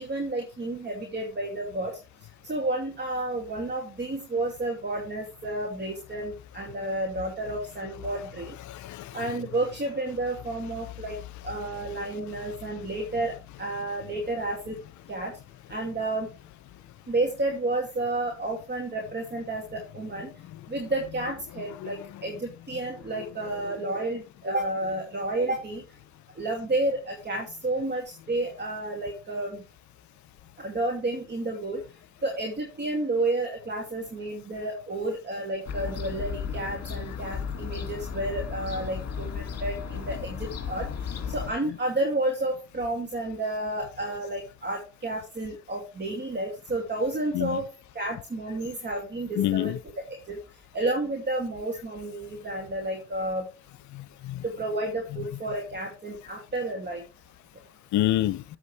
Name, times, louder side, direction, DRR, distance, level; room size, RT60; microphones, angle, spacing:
voice 1, 0.0-1.9 2.4-8.5 9.1-11.2 11.4-13.3 13.6-14.8 15.1-15.3 15.7-16.3 17.1-20.3 20.7-25.8 26.4-29.6 30.6-31.8 32.2-40.9 41.3-47.7 47.9-49.8 50.3-50.4 50.7-53.5 54.4-57.0, right 2 dB, 35° right, 2.4 m, -31 dB
voice 2, 8.7-9.2 21.8-21.9 47.3-47.6 49.4-49.8 53.9-54.4 57.9-58.4, left 14 dB, 70° left, 0.5 m, -27 dB
Fowl / Gull seagull, 35.6-41.5, left 7 dB, 55° left, 2.3 m, -34 dB
8.3 x 8.1 x 3.3 m
cardioid pair, 90°, 30 cm